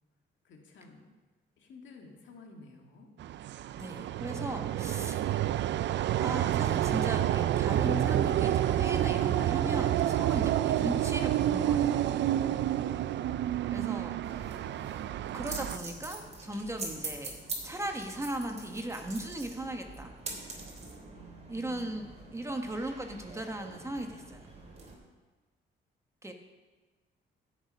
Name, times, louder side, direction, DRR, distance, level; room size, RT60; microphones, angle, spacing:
voice 1, 0.4-1.1 1.6-3.1 12.4-13.2 21.1-22.4, left 2 dB, 70° left, 1 dB, 2.1 m, -52 dB
sound 1, 3.2-15.8, right 12 dB, 65° right, 0.4 m, -29 dB
voice 2, 3.8-5.2 6.2-12.3 13.7-14.2 15.3-17.4 17.6-20.1 21.5-24.4 26.2-26.3, right 1 dB, 15° right, 4 dB, 1.3 m, -37 dB
sound 2, 14.2-25.0, right 3 dB, 35° right, 3.2 m, -44 dB
15.5 x 6.8 x 5.4 m, 1.3 s
cardioid pair, 90°, 20 cm